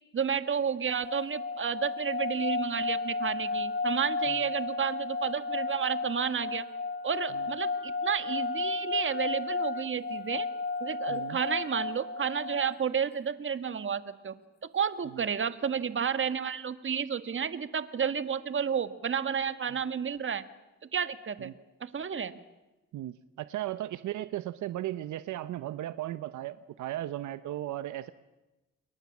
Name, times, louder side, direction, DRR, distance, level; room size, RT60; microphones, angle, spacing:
voice 1, 0.1-6.6 7.0-10.5 10.8-14.3 14.7-20.4 20.9-21.5 21.8-22.3, right 7 dB, 40° right, 12 dB, 1.8 m, -31 dB
sound 1, 0.9-12.8, left 3 dB, 35° left, 1.7 m, -33 dB
voice 2, 11.1-11.4 15.1-15.2 21.4-21.5 22.9-28.1, right 14 dB, 75° right, 14 dB, 0.9 m, -36 dB
29.0 x 22.0 x 7.3 m, 1.1 s
cardioid pair, 90°, 30 cm